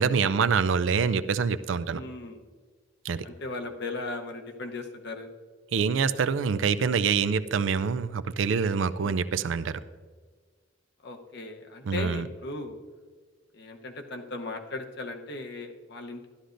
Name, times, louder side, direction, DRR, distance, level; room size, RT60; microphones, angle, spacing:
voice 1, 0.0-2.0 3.0-3.2 5.7-9.8 11.9-12.3, right 6 dB, 80° right, 13 dB, 0.4 m, -25 dB
voice 2, 1.9-2.4 3.2-5.3 9.0-9.2 11.0-12.8 13.5-16.3, left 2 dB, 65° left, 4 dB, 0.9 m, -37 dB
13.0 x 11.5 x 2.6 m, 1.5 s
head